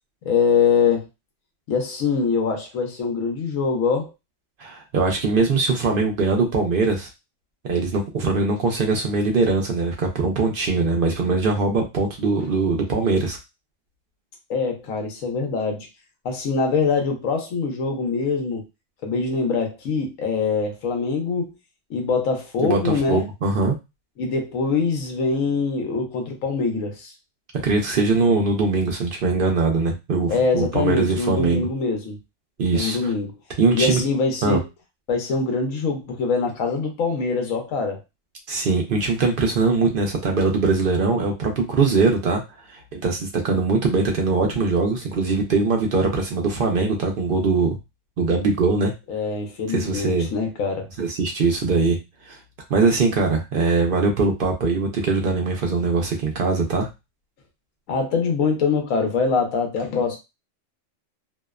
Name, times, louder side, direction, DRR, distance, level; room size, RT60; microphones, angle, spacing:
voice 1, 0.2-1.1 1.7-4.1 14.5-15.9 16.2-18.7 19.0-21.5 21.9-23.3 24.2-27.1 30.3-32.2 32.7-33.4 33.7-34.7 35.1-38.0 49.1-50.9 57.9-60.2, left 4 dB, 85° left, 1.1 m, -23 dB
voice 2, 4.6-7.1 7.6-13.4 22.6-23.8 27.6-31.7 32.6-33.1 33.6-34.0 34.4-34.6 38.5-42.4 42.7-47.8 48.2-48.9 49.7-50.3 51.0-52.0 52.3-52.4 52.7-56.9, right 3 dB, 60° right, 0.6 m, -21 dB
2.7 x 2.0 x 2.3 m
omnidirectional pair, 1.3 m